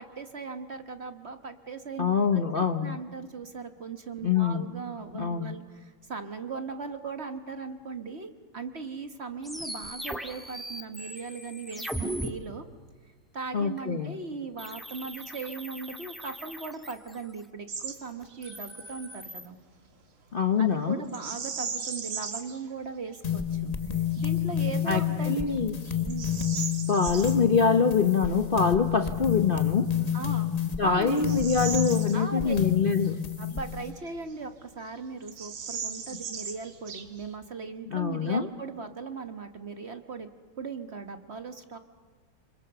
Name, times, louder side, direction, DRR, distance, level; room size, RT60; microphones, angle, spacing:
voice 1, 0.0-2.4 2.8-12.7 13.3-19.6 20.6-25.4 26.0-26.4 30.1-30.5 30.8-31.4 32.1-32.6 33.4-40.3 40.6-41.8, right 4 dB, 40° right, 8 dB, 1.1 m, -38 dB
voice 2, 2.0-3.0 4.2-4.6 5.1-5.5 13.5-14.1 20.3-21.0 24.9-25.8 26.9-29.9 30.8-33.2 37.9-38.5, left 6 dB, 85° left, 8 dB, 0.4 m, -25 dB
sound 1, 9.4-12.3 14.6-17.4 18.2-19.5, equal, ahead, 1.5 m, -39 dB
Bird vocalization bird call bird song, 17.7-18.0 18.3-18.6 21.1-22.6 23.1-23.2 23.9-24.3 24.8-24.9 25.5-27.4 29.5-29.6 30.2-32.7 33.0-33.1 33.8-34.6 34.9-35.0 35.2-37.4, right 6 dB, 80° right, 2.9 m, -37 dB
sound 2, 23.2-33.9, left 9 dB, 30° left, 0.8 m, -29 dB
28.0 x 25.5 x 6.8 m, 1.5 s
omnidirectional pair, 2.3 m